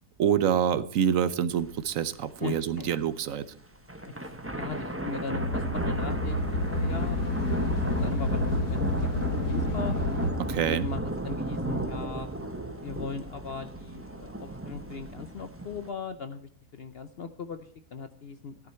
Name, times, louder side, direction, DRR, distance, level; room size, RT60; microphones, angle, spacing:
voice 1, 0.2-3.5 10.4-10.9, right 8 dB, 65° right, 15 dB, 1.0 m, -26 dB
sound 1, 1.6-1.7 2.0-2.1 2.6-3.0 3.8-15.9, right 1 dB, 10° right, 0.9 m, -34 dB
voice 2, 2.4-2.9 4.2-7.2 7.5-10.0 10.6-12.3 12.8-18.6, left 5 dB, 60° left, 11 dB, 0.6 m, -39 dB
sound 2, 5.3-10.3, left 2 dB, 85° left, 1.7 m, -30 dB
sound 3, 5.6-11.0, right 1 dB, 45° left, 3.3 m, -36 dB
13.0 x 10.5 x 4.4 m, 0.62 s
omnidirectional pair, 1.7 m